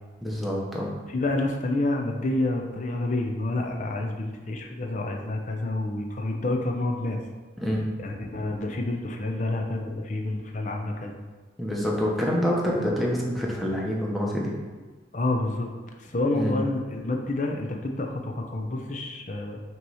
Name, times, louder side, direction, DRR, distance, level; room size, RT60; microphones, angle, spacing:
voice 1, 0.2-0.9 7.6-7.9 11.6-14.5 16.3-16.6, equal, ahead, -4 dB, 0.9 m, -26 dB
voice 2, 1.1-7.2 8.0-11.1 15.1-15.7 16.0-19.6, left 2 dB, 40° left, 2 dB, 0.7 m, -28 dB
5.8 x 3.1 x 5.5 m, 1.3 s
head